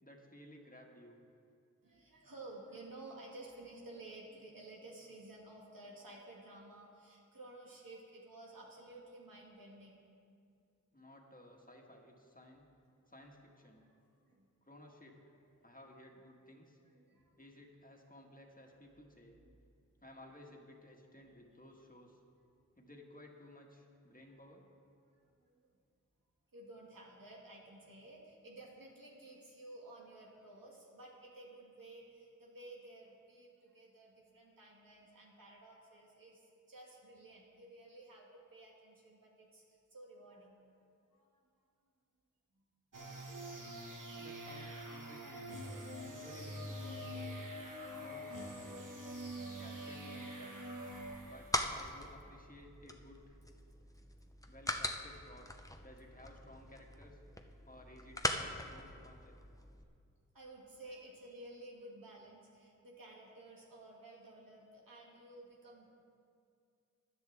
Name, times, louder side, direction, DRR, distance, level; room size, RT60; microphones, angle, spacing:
voice 1, 0.0-1.2 10.9-12.7 13.1-13.8 14.6-15.2 15.6-16.8 17.4-19.4 20.0-22.2 22.7-24.6 44.2-45.6 46.0-47.4 47.9-48.3 49.6-50.5 51.2-53.4 54.5-55.5 55.8-57.2 57.7-59.4, left 1 dB, 25° left, 0 dB, 1.6 m, -56 dB
voice 2, 1.8-10.1 13.0-13.1 13.8-14.5 15.6-15.7 16.8-17.4 19.4-19.5 21.3-21.4 25.5-25.7 26.5-40.6 41.1-41.5 42.5-42.6 53.8-53.9 57.5-57.7 59.7-60.0 60.3-65.9, right 2 dB, 90° right, -3 dB, 2.0 m, -54 dB
sound 1, 42.9-51.8, equal, 70° right, 1.4 m, -45 dB
sound 2, 50.9-59.8, left 1 dB, 10° left, 0.7 m, -42 dB
15.0 x 10.5 x 3.5 m, 2.4 s
wide cardioid pair, 45°, 33 cm